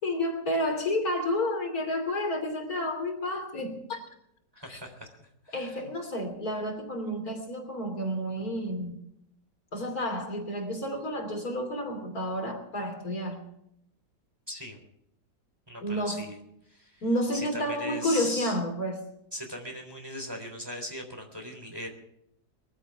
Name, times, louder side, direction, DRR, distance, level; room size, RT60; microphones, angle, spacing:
voice 1, 0.0-4.0 4.7-4.8 5.5-9.0 9.7-13.5 15.8-16.2 17.0-19.0, left 1 dB, 55° left, 3.4 m, -30 dB
voice 2, 4.5-5.8 14.5-14.8 15.7-16.4 16.7-17.0 17.3-18.6 19.3-21.9, left 1 dB, 10° right, 3.5 m, -39 dB
23.0 x 15.0 x 3.5 m
omnidirectional pair, 2.0 m